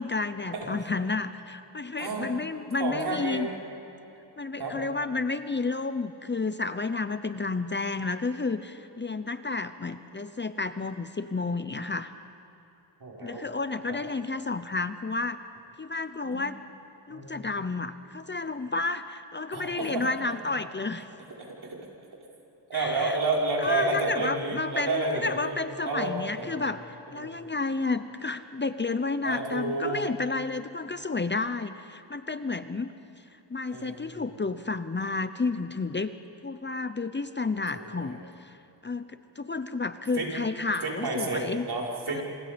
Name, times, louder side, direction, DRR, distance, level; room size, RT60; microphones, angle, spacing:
voice 1, 0.0-3.5 4.4-12.1 13.2-15.4 15.8-16.6 17.1-21.1 22.7-23.2 23.6-32.9 33.5-36.1 36.4-38.6 38.8-39.0 39.4-41.7 42.1-42.2, left 3 dB, 25° left, 11 dB, 0.8 m, -31 dB
voice 2, 2.0-2.3 2.8-3.5 4.6-4.8 13.0-13.4 13.9-14.0 16.2-16.4 17.1-17.4 19.5-20.0 21.4-21.8 22.7-25.6 25.8-26.6 27.1-27.4 29.2-30.0 33.7-34.2 37.7-38.2 40.1-40.3 40.8-42.2, right 2 dB, 60° right, -2 dB, 5.4 m, -30 dB
28.0 x 27.5 x 5.3 m, 2.9 s
cardioid pair, 85°, 43 cm